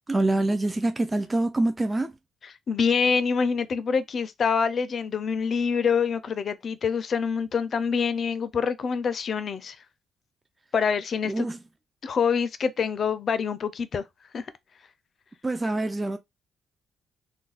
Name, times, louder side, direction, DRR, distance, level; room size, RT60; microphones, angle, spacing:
voice 1, 0.1-2.1 11.3-11.6 15.4-16.2, right 2 dB, 20° right, 0.3 m, -25 dB
voice 2, 2.7-9.8 10.7-11.5 12.0-14.0 14.3-14.5, left 6 dB, 50° left, 0.4 m, -26 dB
2.5 x 2.1 x 3.9 m
cardioid pair, 90°, 0 cm